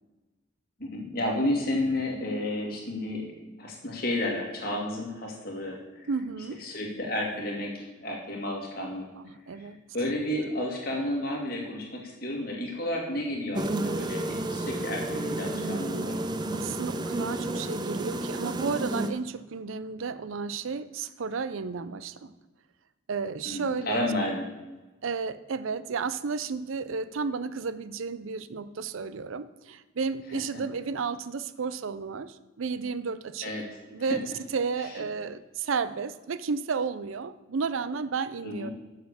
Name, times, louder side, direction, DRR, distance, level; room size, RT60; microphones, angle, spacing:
voice 1, 0.8-3.3 3.6-6.1 6.6-9.1 9.5-14.2 14.5-16.2 23.4-24.5 30.3-30.6 33.4-33.8 34.1-34.2 34.8-35.0 38.4-38.7, left 1 dB, 45° left, -1 dB, 2.3 m, -32 dB
voice 2, 6.1-6.6 9.2-9.8 15.5-16.1 16.5-22.3 23.1-24.1 25.0-33.5 33.9-38.7, right 5 dB, 80° right, 14 dB, 0.5 m, -32 dB
sound 1, 13.5-19.1, right 1 dB, 20° right, 0.5 m, -31 dB
7.8 x 6.7 x 6.9 m, 1.1 s
head